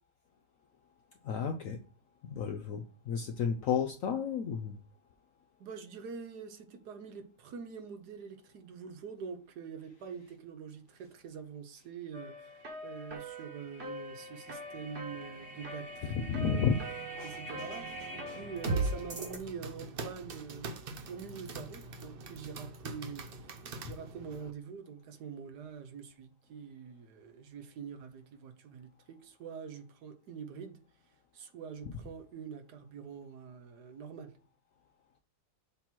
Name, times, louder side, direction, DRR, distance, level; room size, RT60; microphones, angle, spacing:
voice 1, 1.2-1.8 2.2-4.8 16.0-16.8 17.2-17.4 18.3-18.4, left 7 dB, 75° left, 0.8 m, -32 dB
voice 2, 5.6-16.7 17.2-17.9 18.1-20.7 21.1-23.3 23.8-30.8 31.3-34.3, right 6 dB, 70° right, 1.3 m, -45 dB
sound 1, 12.1-19.4, right 2 dB, 40° right, 1.5 m, -39 dB
sound 2, 18.3-24.5, right 3 dB, 85° right, 0.5 m, -45 dB
6.9 x 3.0 x 5.9 m
omnidirectional pair, 1.9 m